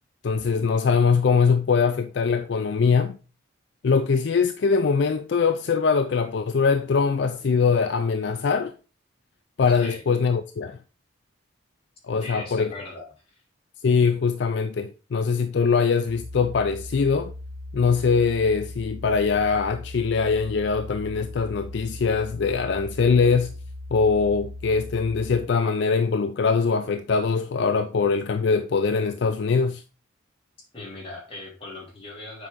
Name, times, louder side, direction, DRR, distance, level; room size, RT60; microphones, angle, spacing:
voice 1, 0.2-3.2 3.8-8.7 9.6-10.8 12.0-12.7 13.8-17.3 17.7-23.6 23.9-29.8, left 5 dB, 55° left, 0.4 m, -22 dB
voice 2, 9.7-10.0 12.2-13.4 30.7-32.5, left 2 dB, 25° left, 2.7 m, -39 dB
sound 1, 16.1-25.4, left 1 dB, 85° right, 1.1 m, -38 dB
7.5 x 4.6 x 3.7 m
head